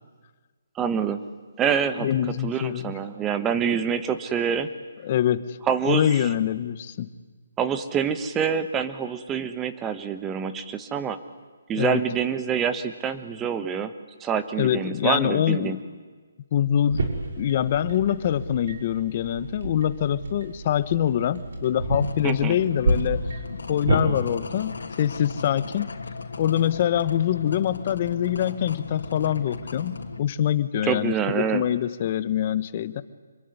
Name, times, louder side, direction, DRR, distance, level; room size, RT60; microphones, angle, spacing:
voice 1, 0.8-1.2 1.6-2.1 2.4-4.7 5.7-6.3 7.6-11.2 11.7-13.9 14.2-15.8 22.2-22.6 30.8-31.6, right 7 dB, 10° right, 10 dB, 1.3 m, -26 dB
voice 2, 2.0-2.9 5.0-5.6 5.8-7.1 11.8-12.0 14.6-15.8 16.5-17.0 17.4-23.2 23.7-25.9 26.4-33.0, left 10 dB, 35° left, 14 dB, 1.1 m, -24 dB
sound 1, 16.9-24.0, right 2 dB, 65° right, 5.7 m, -30 dB
sound 2, 22.0-30.2, left 4 dB, 85° left, 3.2 m, -37 dB
26.0 x 23.0 x 9.8 m, 1.4 s
hypercardioid pair, 165°, 0 cm